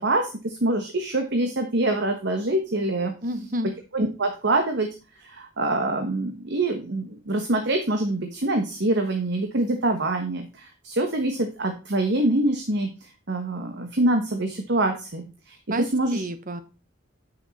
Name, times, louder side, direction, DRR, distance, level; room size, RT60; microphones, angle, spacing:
voice 1, 0.0-3.1 3.9-4.9 5.2-15.6 15.9-16.2, right 2 dB, 55° right, 5 dB, 1.3 m, -25 dB
voice 2, 3.2-3.7 15.7-16.6, right 1 dB, 40° right, 11 dB, 1.0 m, -30 dB
8.8 x 6.6 x 4.1 m, 0.31 s
head